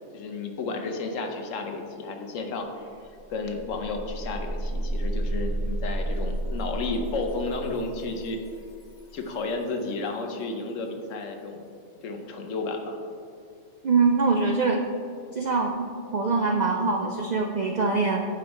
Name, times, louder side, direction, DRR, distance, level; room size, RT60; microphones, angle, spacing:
voice 1, 0.1-2.9 3.3-8.4 9.1-11.7 12.0-13.0, left 3 dB, 90° left, 4 dB, 1.1 m, -32 dB
sound 1, 3.0-9.8, right 1 dB, 30° left, 0.8 m, -32 dB
voice 2, 13.8-14.8 15.3-18.2, right 4 dB, 75° right, 2 dB, 0.4 m, -24 dB
8.5 x 5.1 x 3.0 m, 2.5 s
omnidirectional pair, 1.3 m